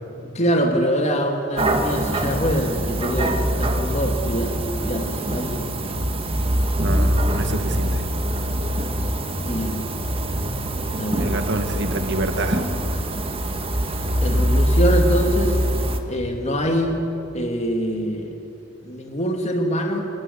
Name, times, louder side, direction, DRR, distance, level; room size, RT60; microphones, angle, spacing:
voice 1, 0.3-5.7 9.4-9.8 11.0-11.3 14.2-15.6 16.1-17.0 17.3-18.4 18.8-20.0, equal, 35° left, 3 dB, 2.1 m, -24 dB
sound 1, 1.6-16.0, equal, 30° right, 1.7 m, -23 dB
voice 2, 6.8-8.1 11.2-12.6, right 2 dB, 60° right, 6 dB, 1.9 m, -27 dB
27.0 x 20.0 x 8.5 m, 2.9 s
head